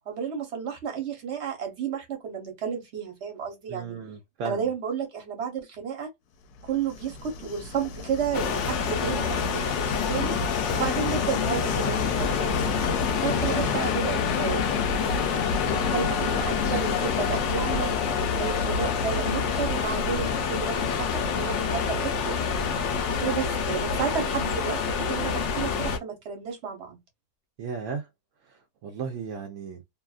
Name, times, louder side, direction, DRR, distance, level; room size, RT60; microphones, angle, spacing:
voice 1, 0.1-4.0 4.4-6.1 6.6-9.7 10.1-10.4 10.7-12.5 13.2-14.7 15.6-17.9 18.4-22.4 23.2-27.0, right 7 dB, 50° right, 1.1 m, -32 dB
voice 2, 3.7-4.7 9.0-9.3 13.3-13.7 27.6-28.1 28.4-29.8, right 6 dB, 65° right, 0.8 m, -36 dB
Train, 6.6-24.4, left 6 dB, 80° left, 1.1 m, -32 dB
sound 1, 8.3-26.0, left 5 dB, 60° left, 0.8 m, -28 dB
2.8 x 2.4 x 2.3 m
omnidirectional pair, 1.6 m